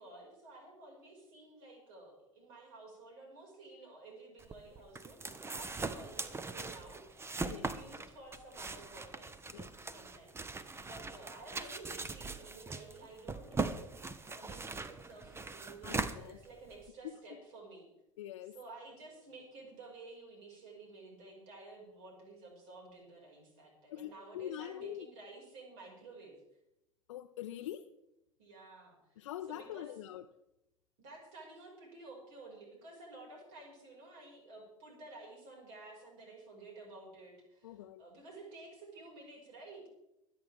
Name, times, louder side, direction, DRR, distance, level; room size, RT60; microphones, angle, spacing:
voice 1, 0.0-9.4 9.9-13.9 14.2-17.9 18.5-26.3 28.4-29.9 31.0-37.7 38.0-39.9, right 2 dB, 55° right, 5.6 m, -52 dB
sound 1, 4.4-16.9, right 3 dB, 15° right, 0.9 m, -41 dB
voice 2, 15.8-16.4 17.0-17.2 18.2-18.6 23.9-25.1 27.1-27.9 29.2-30.2 37.6-38.0, left 12 dB, 65° left, 0.6 m, -44 dB
24.5 x 9.1 x 3.5 m
figure-of-eight pair, 75°, 17 cm